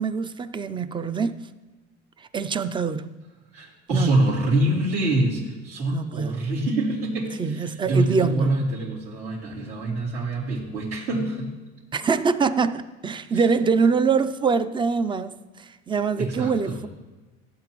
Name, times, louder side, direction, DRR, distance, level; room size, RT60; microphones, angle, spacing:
voice 1, 0.0-1.5 2.2-3.2 3.9-4.4 5.9-6.5 7.4-8.7 11.9-16.9, right 5 dB, 15° right, 0.4 m, -24 dB
voice 2, 3.5-11.5 13.3-13.4 16.2-16.8, right 2 dB, 80° right, 3.7 m, -25 dB
16.0 x 8.1 x 3.1 m
supercardioid pair, 115°, 31 cm